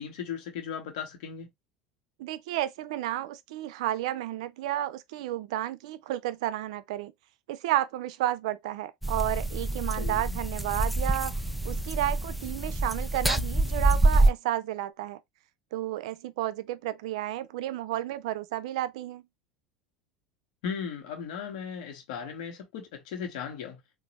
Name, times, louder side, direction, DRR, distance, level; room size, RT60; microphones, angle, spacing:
voice 1, 0.0-1.5 10.0-10.4 20.6-23.8, left 7 dB, 65° left, 1.3 m, -37 dB
voice 2, 2.2-7.1 7.5-11.4 11.6-15.2 15.7-19.2, right 13 dB, 65° right, 0.5 m, -32 dB
sound 1, 9.0-14.3, right 2 dB, ahead, 0.5 m, -26 dB
3.9 x 2.6 x 2.9 m
figure-of-eight pair, 75°, 4 cm